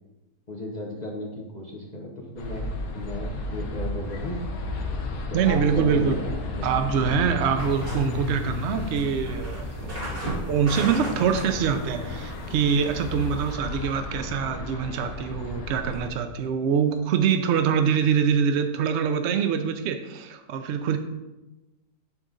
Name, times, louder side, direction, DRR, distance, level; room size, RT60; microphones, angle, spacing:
voice 1, 0.5-2.6 2.9-4.4 5.3-6.6, left 1 dB, 40° left, -1 dB, 0.7 m, -35 dB
sound 1, 2.4-16.1, left 3 dB, 65° left, 1.2 m, -33 dB
voice 2, 5.3-6.2 6.6-21.0, right 7 dB, 85° right, 7 dB, 0.6 m, -24 dB
sound 2, 7.6-13.5, right 1 dB, 55° right, 3.1 m, -37 dB
9.0 x 3.8 x 3.7 m, 1.1 s
omnidirectional pair, 1.8 m